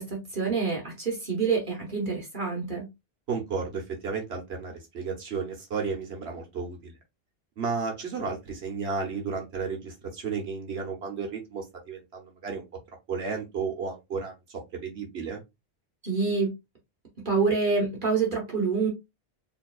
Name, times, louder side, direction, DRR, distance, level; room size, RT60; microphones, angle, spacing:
voice 1, 0.0-2.9 16.0-16.5 17.2-18.9, right 4 dB, 55° right, 1.3 m, -27 dB
voice 2, 3.3-6.9 7.6-12.6 13.1-15.4, right 5 dB, 80° right, 1.4 m, -33 dB
4.4 x 3.1 x 2.4 m
omnidirectional pair, 1.1 m